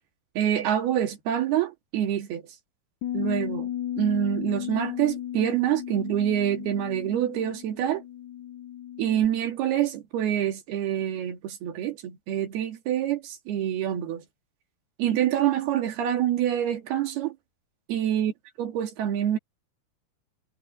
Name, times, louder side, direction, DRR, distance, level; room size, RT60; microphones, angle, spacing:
voice 1, 0.4-2.4 3.1-3.7 4.0-8.0 9.0-14.2 15.0-17.4 17.9-18.3 18.6-19.4, right 10 dB, 90° right, 4.3 m, -26 dB
Bass guitar, 3.0-9.3, left 11 dB, 65° left, 2.5 m, -35 dB
omnidirectional pair, 4.4 m